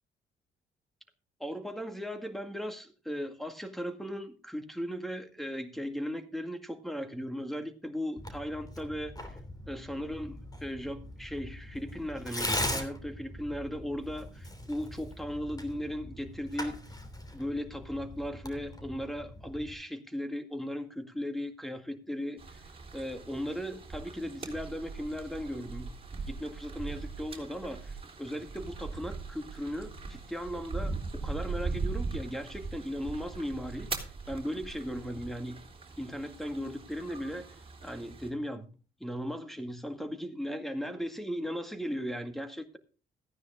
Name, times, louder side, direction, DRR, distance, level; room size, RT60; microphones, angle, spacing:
voice 1, 1.4-9.4 9.7-16.8 17.3-22.6 22.9-25.9 26.3-33.9 34.3-35.6 36.0-38.7 39.0-42.8, equal, ahead, 7 dB, 2.0 m, -37 dB
Tearing, 8.2-19.7, left 1 dB, 20° left, 3.1 m, -40 dB
sound 1, 22.4-38.3, right 4 dB, 25° right, 3.7 m, -40 dB
15.0 x 9.7 x 3.7 m, 0.36 s
cardioid pair, 90°, 20 cm